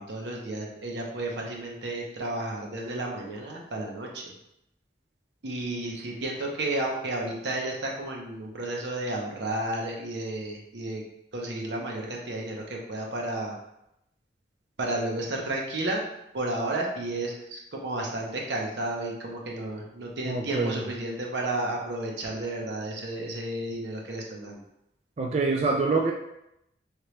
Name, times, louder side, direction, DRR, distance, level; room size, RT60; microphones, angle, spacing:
voice 1, 0.0-4.3 5.4-11.0 11.3-13.5 14.8-16.0 16.3-24.6, right 2 dB, 75° right, -1 dB, 0.8 m, -32 dB
voice 2, 20.2-20.8 25.2-26.1, right 3 dB, 35° right, 0 dB, 0.3 m, -25 dB
3.2 x 2.9 x 3.1 m, 0.82 s
head